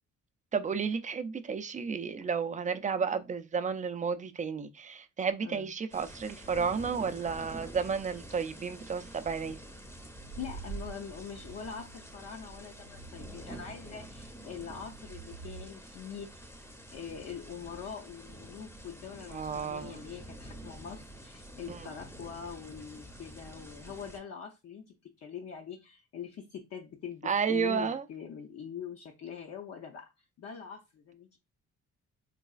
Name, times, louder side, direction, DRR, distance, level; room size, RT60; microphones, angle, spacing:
voice 1, 0.5-9.6 19.3-20.1 21.7-21.9 27.2-28.0, right 6 dB, 25° right, 0.4 m, -32 dB
voice 2, 5.4-5.7 10.3-16.4 16.9-30.1 30.4-31.4, left 7 dB, 55° left, 0.6 m, -43 dB
sound 1, 5.9-24.2, equal, 10° left, 0.7 m, -48 dB
sound 2, 10.0-15.7, right 6 dB, 75° right, 0.6 m, -47 dB
4.0 x 2.3 x 2.3 m
cardioid pair, 90°, 30 cm